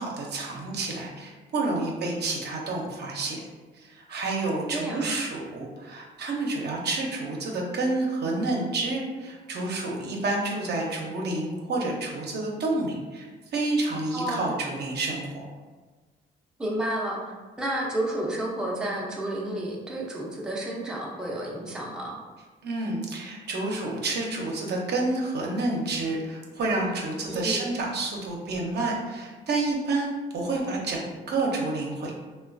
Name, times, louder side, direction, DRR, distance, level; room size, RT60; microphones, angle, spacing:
voice 1, 0.0-3.4 3.7-15.4 22.6-32.2, right 2 dB, 55° right, -1 dB, 0.6 m, -29 dB
voice 2, 4.7-5.2 14.1-14.5 16.6-22.2 27.3-27.7, right 1 dB, 5° right, -4 dB, 0.5 m, -31 dB
2.9 x 2.2 x 2.5 m, 1.3 s
cardioid pair, 90°, 20 cm